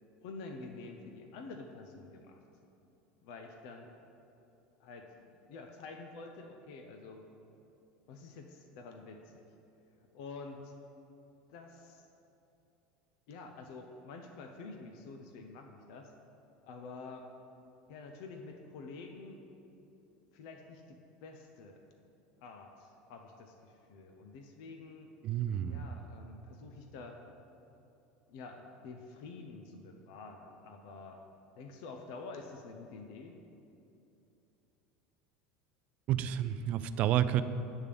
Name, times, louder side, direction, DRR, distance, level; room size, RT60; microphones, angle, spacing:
voice 1, 0.2-2.4 3.2-3.9 4.8-7.3 8.1-9.4 10.1-10.7 11.5-12.1 13.3-16.1 16.6-17.3 17.9-19.4 20.3-21.8 22.4-25.1 25.6-27.2 28.3-31.2 31.6-33.4, left 3 dB, 70° left, 3 dB, 0.7 m, -48 dB
voice 2, 25.2-25.9 36.1-37.4, right 11 dB, 45° right, 13 dB, 0.3 m, -30 dB
9.2 x 3.5 x 6.8 m, 2.8 s
supercardioid pair, 130°, 3 cm